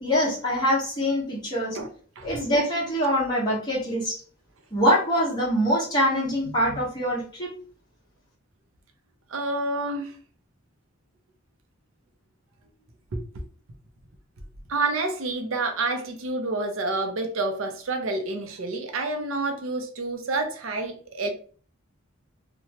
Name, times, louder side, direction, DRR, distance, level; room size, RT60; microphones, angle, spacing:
voice 1, 0.0-1.8 2.2-4.2 4.7-7.5, equal, 20° left, -7 dB, 1.1 m, -24 dB
voice 2, 9.3-10.1 13.1-13.2 14.7-21.3, right 2 dB, 85° right, 5 dB, 0.6 m, -28 dB
2.9 x 2.2 x 2.8 m, 0.42 s
head